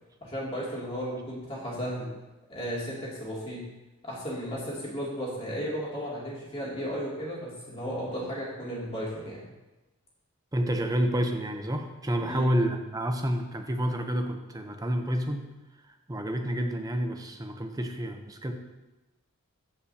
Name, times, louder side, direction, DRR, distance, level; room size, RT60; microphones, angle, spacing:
voice 1, 0.2-2.1 2.5-3.6 4.0-9.4 12.2-12.5, equal, 25° left, -5 dB, 2.4 m, -34 dB
voice 2, 10.5-15.5 16.1-18.5, equal, 15° right, 4 dB, 0.7 m, -29 dB
14.5 x 5.5 x 2.8 m, 1.1 s
head